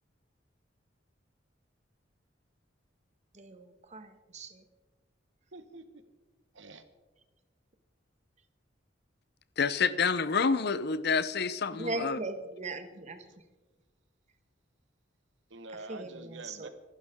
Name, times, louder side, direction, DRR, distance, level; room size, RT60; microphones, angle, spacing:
voice 1, 3.3-4.6 11.7-13.2 15.7-16.7, right 2 dB, 40° right, 8 dB, 1.3 m, -39 dB
voice 2, 5.5-6.0 6.5-6.8 13.3-13.4 15.5-16.7, right 3 dB, 80° right, 9 dB, 1.4 m, -46 dB
voice 3, 9.6-12.2, left 5 dB, 60° left, 15 dB, 0.7 m, -28 dB
25.0 x 11.5 x 3.7 m, 1.3 s
head